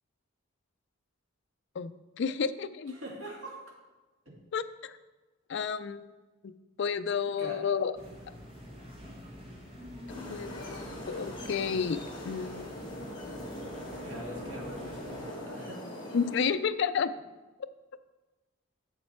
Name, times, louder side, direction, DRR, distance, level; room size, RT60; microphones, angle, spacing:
voice 1, 1.8-2.9 4.5-5.0 5.5-6.1 6.4-6.5 6.8-7.9 10.3-12.0 12.2-12.6 16.1-17.1, left 6 dB, 55° left, 12 dB, 0.4 m, -31 dB
voice 2, 2.9-3.6 4.3-4.4 7.3-7.6 14.1-15.8, equal, 85° right, -3 dB, 2.3 m, -43 dB
sound 1, 7.9-15.2, equal, 25° right, 1.4 m, -47 dB
sound 2, 10.1-16.4, left 1 dB, 25° left, 1.7 m, -42 dB
7.3 x 7.2 x 4.4 m, 1.2 s
head